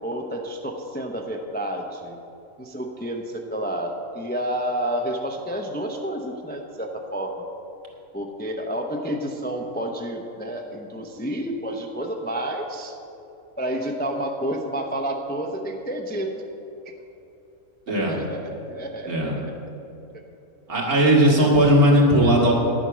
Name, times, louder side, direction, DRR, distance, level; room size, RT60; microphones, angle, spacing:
voice 1, 0.0-2.2 2.6-7.3 8.1-12.9 13.6-16.4 16.8-16.9 18.1-19.6, right 1 dB, 10° left, 2 dB, 0.5 m, -30 dB
voice 2, 17.9-18.2 19.1-19.3 20.7-22.5, equal, 75° right, -3 dB, 2.6 m, -17 dB
11.5 x 8.9 x 6.2 m, 2.9 s
omnidirectional pair, 1.6 m